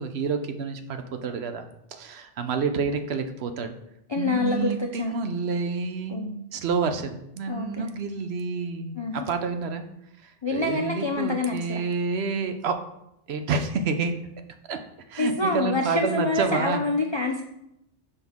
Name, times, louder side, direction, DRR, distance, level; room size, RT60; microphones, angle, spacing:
voice 1, 0.0-3.7 4.2-9.8 10.2-12.8 13.3-14.1 14.7-14.8 15.1-16.8, right 5 dB, 65° right, 7 dB, 0.9 m, -29 dB
voice 2, 4.1-5.1 6.1-6.3 7.5-7.9 9.0-9.2 10.4-11.8 15.2-17.4, left 3 dB, 50° left, 3 dB, 0.3 m, -26 dB
6.0 x 5.5 x 3.6 m, 0.80 s
omnidirectional pair, 1.2 m